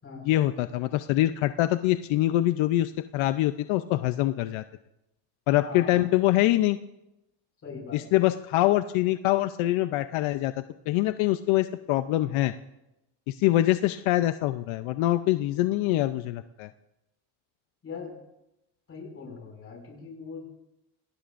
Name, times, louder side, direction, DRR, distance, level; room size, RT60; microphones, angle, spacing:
voice 1, 0.2-4.6 5.5-6.8 7.9-10.5 10.9-12.5 13.3-16.7, left 15 dB, 75° left, 10 dB, 0.7 m, -24 dB
voice 2, 5.6-6.1 7.6-8.1 17.8-18.2 18.9-20.4, left 5 dB, 30° left, 0 dB, 5.9 m, -41 dB
27.0 x 18.5 x 2.6 m, 0.90 s
cardioid pair, 160°, 48 cm